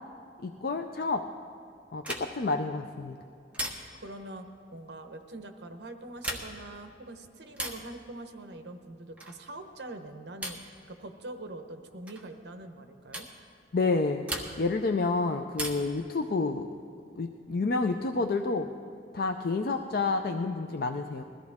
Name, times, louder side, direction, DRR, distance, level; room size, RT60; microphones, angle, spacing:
voice 1, 0.4-1.3 1.9-3.2 13.7-14.3 14.6-16.7 17.2-18.7 19.1-21.2, left 3 dB, 55° left, 5 dB, 0.5 m, -29 dB
sound 1, 2.0-2.5 3.5-4.1 6.1-6.7 7.5-7.9 9.2-9.5 10.4-10.8 12.1-12.3 13.1-13.4 14.3-14.8 15.5-16.0 17.5-18.2, right 1 dB, 5° right, 1.2 m, -38 dB
voice 2, 4.0-4.4 4.7-13.3, right 2 dB, 60° right, 6 dB, 1.0 m, -43 dB
21.0 x 14.5 x 3.6 m, 2.6 s
head